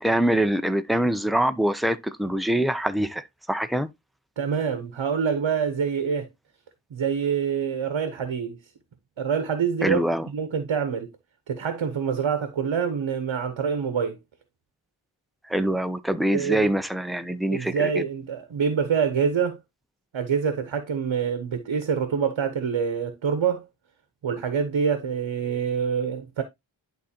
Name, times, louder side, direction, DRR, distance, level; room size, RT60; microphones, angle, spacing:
voice 1, 0.0-3.9 9.8-10.3 15.5-18.0, right 1 dB, ahead, 0.5 m, -24 dB
voice 2, 4.4-6.3 6.9-8.6 9.2-10.0 10.3-11.1 11.5-14.2 16.3-16.7 17.5-19.6 20.1-23.7 24.2-26.4, right 6 dB, 75° right, 0.9 m, -26 dB
11.0 x 3.8 x 2.8 m
wide cardioid pair, 85°, 46 cm